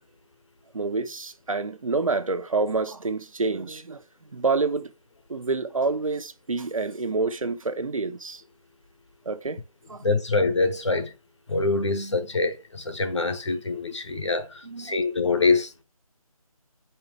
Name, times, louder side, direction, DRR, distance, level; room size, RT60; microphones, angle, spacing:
voice 1, 0.7-4.0 4.3-4.9 5.3-8.4 9.3-9.6 9.9-10.0 14.6-14.9, right 3 dB, 65° right, 0.8 m, -27 dB
voice 2, 10.0-11.1 11.5-15.8, left 3 dB, 50° left, 1.1 m, -25 dB
6.9 x 5.6 x 3.4 m
figure-of-eight pair, 180°, 19 cm